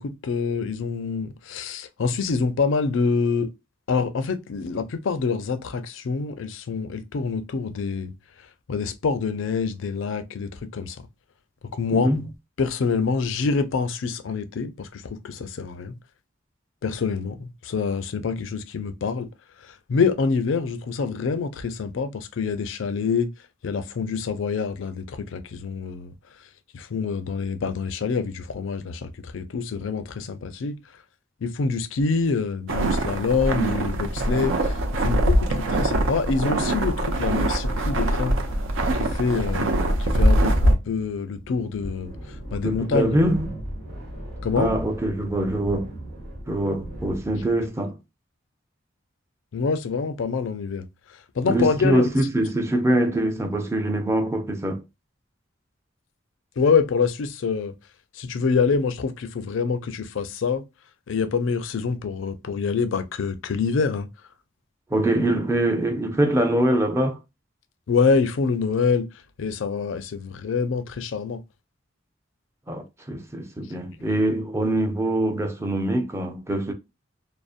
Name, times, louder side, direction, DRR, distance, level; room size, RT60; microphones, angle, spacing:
voice 1, 0.0-3.5 3.9-8.1 8.7-11.0 11.7-12.3 12.6-15.9 16.8-19.3 19.6-23.3 23.6-26.1 26.7-30.8 31.4-38.4 38.9-42.1 42.5-43.2 44.4-44.7 49.5-50.9 51.4-52.1 56.6-57.8 58.1-60.6 61.1-64.1 67.9-69.1 69.4-71.4, left 5 dB, 70° left, 0.4 m, -26 dB
voice 2, 11.9-12.3 42.6-43.6 44.6-45.9 46.5-47.9 51.5-54.8 64.9-67.2 72.7-76.7, right 1 dB, 15° right, 0.5 m, -23 dB
sound 1, 32.7-40.7, right 1 dB, 75° right, 0.5 m, -22 dB
sound 2, 39.3-47.7, right 1 dB, 60° right, 1.1 m, -38 dB
2.6 x 2.0 x 2.4 m
head